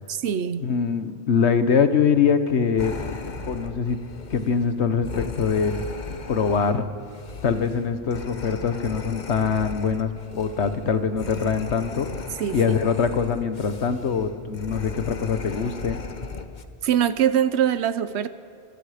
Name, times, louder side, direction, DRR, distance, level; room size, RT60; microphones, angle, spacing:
voice 1, 0.1-0.7 12.4-12.6 16.8-18.3, right 9 dB, 85° right, 13 dB, 1.1 m, -23 dB
voice 2, 0.6-3.0 3.5-4.0 4.3-5.7 6.3-6.9 7.4-12.1 12.5-16.0, left 6 dB, 85° left, 10 dB, 1.4 m, -23 dB
Creatue Pant (Slow), 2.8-16.6, left 4 dB, 45° left, 1.2 m, -37 dB
27.0 x 21.5 x 5.1 m, 2.7 s
omnidirectional pair, 1.1 m